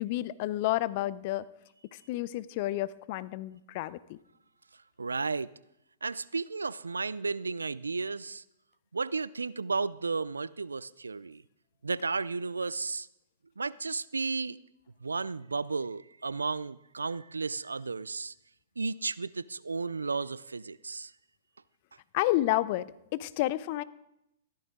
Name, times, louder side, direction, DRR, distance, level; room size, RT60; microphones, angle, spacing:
voice 1, 0.0-1.4 2.1-4.2 22.1-22.9 23.1-23.8, left 16 dB, 50° left, 18 dB, 0.6 m, -30 dB
voice 2, 5.0-5.5 6.0-8.4 8.9-11.4 11.8-13.1 13.6-14.6 15.0-18.3 18.8-21.1, right 4 dB, 85° right, 20 dB, 0.4 m, -33 dB
14.5 x 13.0 x 3.7 m, 0.83 s
hypercardioid pair, 110°, 0 cm